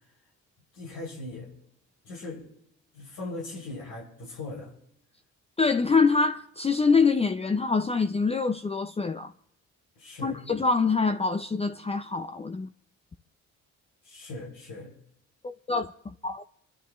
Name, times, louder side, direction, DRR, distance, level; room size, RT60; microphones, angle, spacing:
voice 1, 0.7-1.5 2.0-2.5 2.9-4.7 10.0-10.5 14.0-14.9, left 2 dB, 85° left, 6.8 m, -39 dB
voice 2, 5.6-9.3 10.2-12.7 15.4-15.9 16.2-16.4, left 4 dB, 20° left, 0.6 m, -25 dB
26.5 x 12.5 x 3.2 m
cardioid pair, 90°, 30 cm